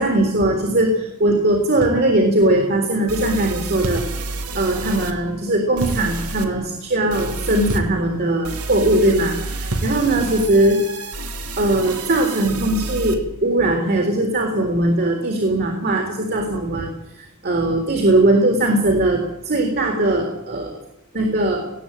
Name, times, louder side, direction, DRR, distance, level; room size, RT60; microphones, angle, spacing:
voice 1, 0.0-4.0 4.5-10.8 11.6-20.7 21.1-21.6, right 1 dB, 45° right, 3 dB, 3.7 m, -19 dB
sound 1, 1.8-2.0 3.8-4.1 5.8-6.0 7.7-8.0 9.7-10.0, right 2 dB, 65° right, 2.5 m, -26 dB
sound 2, 2.4-2.5 3.1-5.1 5.8-6.5 7.1-7.8 8.4-13.1, right 3 dB, 85° right, 2.6 m, -30 dB
19.5 x 16.5 x 9.3 m, 0.82 s
head